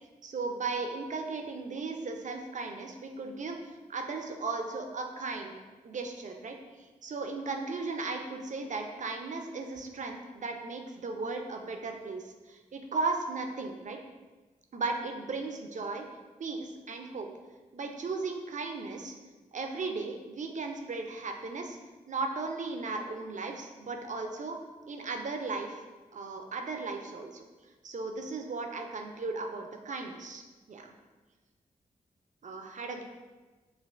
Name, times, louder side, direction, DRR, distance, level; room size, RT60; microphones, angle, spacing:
voice 1, 0.2-3.6 3.9-5.5 5.8-6.6 7.0-14.0 14.7-16.1 16.4-17.3 17.7-19.1 19.5-21.8 22.1-24.6 24.9-25.8 26.1-27.4 27.8-30.4 30.7-30.9 32.4-33.0, right 3 dB, 55° right, 4 dB, 0.5 m, -36 dB
5.6 x 2.5 x 2.5 m, 1.2 s
cardioid pair, 45°, 15 cm